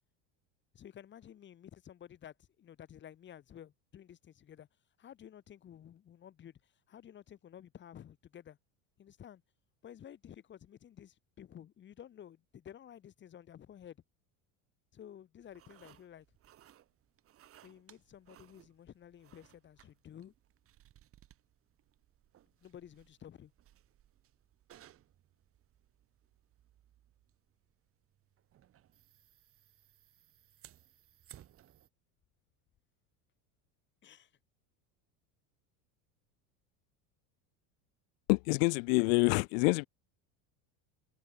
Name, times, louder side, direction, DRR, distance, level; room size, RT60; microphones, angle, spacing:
voice 1, 0.7-4.7 5.0-8.6 9.0-9.4 9.8-14.0 14.9-16.3 17.6-20.3 22.6-23.5 34.0-34.3, left 10 dB, 25° left, 4.0 m, -53 dB
sound 1, 15.4-31.9, right 12 dB, 30° right, 6.3 m, -63 dB
voice 2, 38.3-39.9, left 33 dB, 70° left, 0.6 m, -27 dB
cardioid pair, 170°, 42 cm